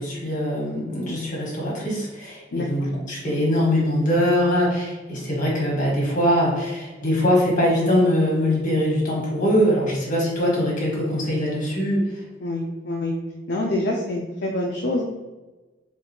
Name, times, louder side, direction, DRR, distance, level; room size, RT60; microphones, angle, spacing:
voice 1, 0.0-12.2, equal, 50° left, -4 dB, 1.4 m, -22 dB
voice 2, 2.5-2.9 12.4-13.1 13.5-15.0, left 1 dB, 65° left, -1 dB, 0.5 m, -26 dB
4.0 x 2.5 x 2.8 m, 1.2 s
head